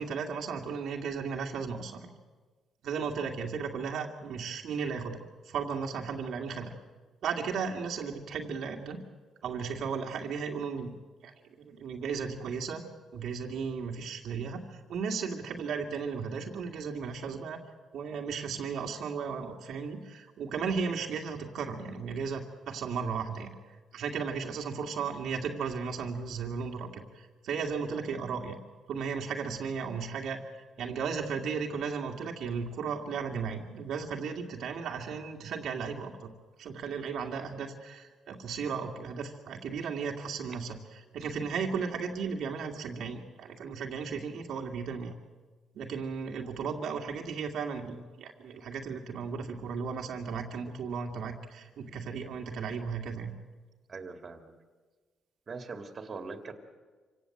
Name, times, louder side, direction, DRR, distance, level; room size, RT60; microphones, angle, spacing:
voice 1, 0.0-2.1 2.8-5.2 5.5-6.7 7.2-9.0 9.4-11.0 11.2-11.3 11.6-12.8 13.1-14.6 14.9-17.6 17.9-23.5 23.9-28.6 28.9-30.4 30.8-36.3 36.6-40.8 41.1-45.1 45.7-53.3, right 5 dB, 75° right, 2 dB, 2.3 m, -35 dB
voice 2, 53.9-54.5 55.5-56.5, right 4 dB, 40° right, 6 dB, 2.5 m, -41 dB
26.0 x 17.5 x 7.9 m, 1.4 s
cardioid pair, 90°, 0 cm